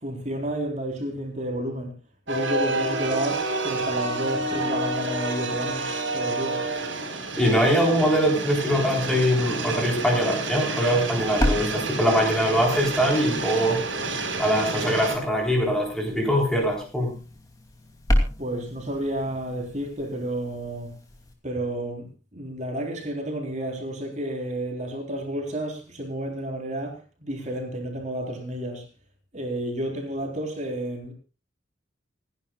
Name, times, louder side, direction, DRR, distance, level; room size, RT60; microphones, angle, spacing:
voice 1, 0.0-1.9 2.3-6.7 18.4-20.9 21.4-28.8 29.3-31.1, right 1 dB, 35° right, 3.9 m, -31 dB
sound 1, 2.3-15.1, right 2 dB, 80° right, 4.7 m, -29 dB
voice 2, 7.4-13.8 14.4-17.2, equal, 5° left, 4.0 m, -22 dB
sound 2, 11.1-21.3, equal, 20° left, 2.8 m, -32 dB
28.0 x 11.0 x 2.4 m
head